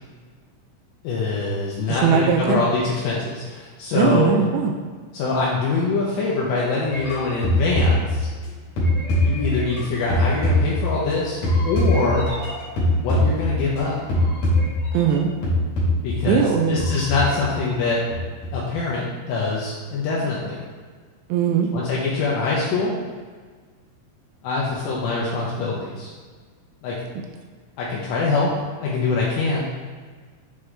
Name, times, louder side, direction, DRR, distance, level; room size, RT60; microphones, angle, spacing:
voice 1, 1.0-4.4 5.1-8.3 9.2-12.3 12.9-14.0 16.0-18.0 18.5-20.6 21.5-23.0 24.4-26.1 26.8-27.1 27.8-28.5 28.8-29.7, left 3 dB, 85° left, -5 dB, 2.5 m, -24 dB
voice 2, 1.9-2.6 4.0-4.7 14.9-15.3 16.3-16.8 21.3-21.7, right 7 dB, 90° right, 2 dB, 3.3 m, -19 dB
sound 1, 6.9-8.4 8.8-11.1 11.4-13.8 14.1-15.2 15.4-16.2 16.8-17.8 18.1-18.6, left 1 dB, 60° left, 1.9 m, -22 dB
8.8 x 3.6 x 3.3 m, 1.6 s
omnidirectional pair, 6.0 m